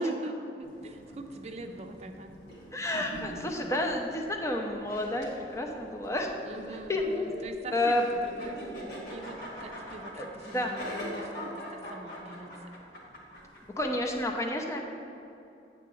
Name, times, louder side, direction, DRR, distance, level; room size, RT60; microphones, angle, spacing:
voice 1, 0.0-2.3 6.4-8.6 9.1-10.2 10.5-12.7, right 2 dB, 35° right, 5 dB, 0.6 m, -41 dB
sound 1, 0.6-14.2, equal, 65° left, 1.8 m, -43 dB
voice 2, 2.7-6.3 6.7-7.2 7.7-8.0 10.1-10.7 13.8-14.8, left 1 dB, 15° left, 2 dB, 0.6 m, -30 dB
8.7 x 3.8 x 6.9 m, 2.8 s
head